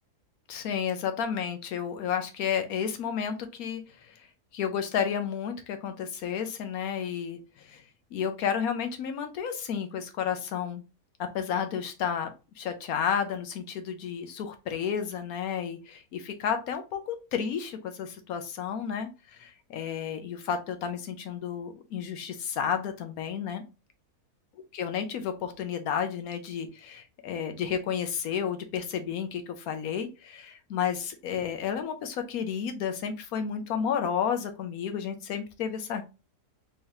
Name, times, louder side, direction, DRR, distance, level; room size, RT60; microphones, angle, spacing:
voice 1, 0.5-4.2 4.5-7.8 8.1-10.8 11.3-23.6 24.7-36.0, left 7 dB, 70° left, 8 dB, 1.0 m, -32 dB
3.6 x 3.1 x 2.8 m, 0.30 s
omnidirectional pair, 1.7 m